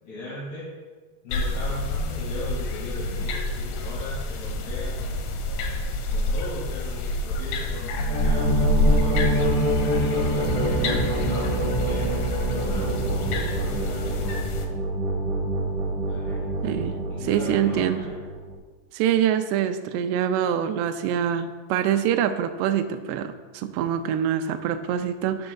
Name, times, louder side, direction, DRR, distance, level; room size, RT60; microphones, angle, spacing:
voice 1, 0.0-0.8 1.2-5.3 6.1-12.1 12.4-14.4 16.0-16.5 17.1-18.1, left 2 dB, 65° left, -8 dB, 4.0 m, -38 dB
sound 1, 1.3-14.7, left 1 dB, 80° left, 2.9 m, -27 dB
sound 2, 7.9-18.5, right 1 dB, 60° right, 2.3 m, -26 dB
voice 2, 16.6-17.0 17.2-18.0 18.9-25.5, right 9 dB, 85° right, 8 dB, 2.6 m, -25 dB
11.5 x 9.7 x 2.3 m, 1.3 s
omnidirectional pair, 5.0 m